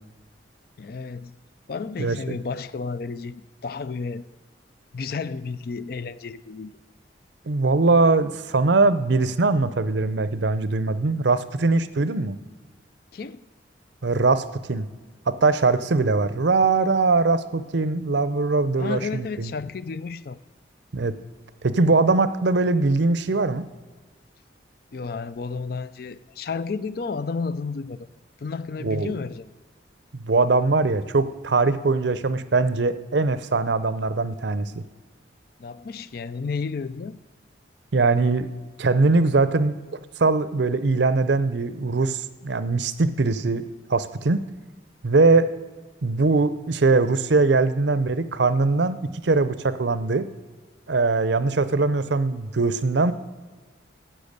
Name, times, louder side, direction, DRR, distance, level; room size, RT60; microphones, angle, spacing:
voice 1, 0.8-1.3 1.7-4.3 4.9-6.7 13.1-13.5 18.8-20.4 24.9-28.1 28.4-29.5 35.6-37.2, left 4 dB, 50° left, 16 dB, 0.4 m, -32 dB
voice 2, 2.0-2.4 7.5-12.4 14.0-14.9 15.3-19.5 20.9-21.1 21.6-23.6 28.8-29.1 30.1-34.7 37.9-38.5 38.8-39.7 40.2-43.6 43.9-44.4 45.0-45.5 46.0-49.0 49.2-50.3 50.9-53.1, right 3 dB, 70° right, 14 dB, 0.6 m, -21 dB
12.0 x 7.8 x 6.6 m, 1.3 s
head